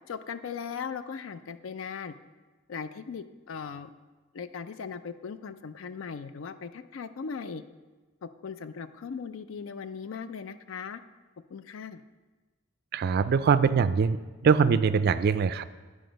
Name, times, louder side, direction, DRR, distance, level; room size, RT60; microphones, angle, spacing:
voice 1, 0.1-2.1 2.7-3.9 4.3-7.6 8.2-11.0 11.5-12.0, left 6 dB, 70° left, 12 dB, 0.4 m, -38 dB
voice 2, 12.9-15.6, right 6 dB, 50° right, 13 dB, 0.3 m, -23 dB
9.7 x 5.0 x 5.1 m, 1.3 s
head